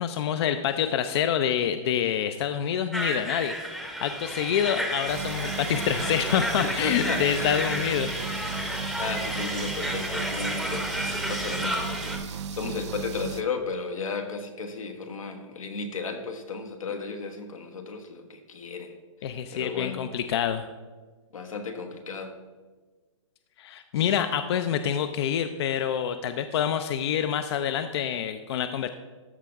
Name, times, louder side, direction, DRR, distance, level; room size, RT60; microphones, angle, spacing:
voice 1, 0.0-3.5 4.0-8.1 19.2-20.7 23.6-28.9, left 9 dB, 50° left, 10 dB, 0.5 m, -27 dB
sound 1, 2.9-12.2, equal, ahead, 0.7 m, -32 dB
sound 2, 5.1-13.4, right 6 dB, 60° right, 0.5 m, -35 dB
voice 2, 6.6-7.2 8.8-10.9 11.3-18.9 19.5-20.0 21.3-22.3, left 4 dB, 85° left, 3 dB, 1.4 m, -34 dB
13.5 x 5.2 x 3.5 m, 1.3 s
hypercardioid pair, 140°, 17 cm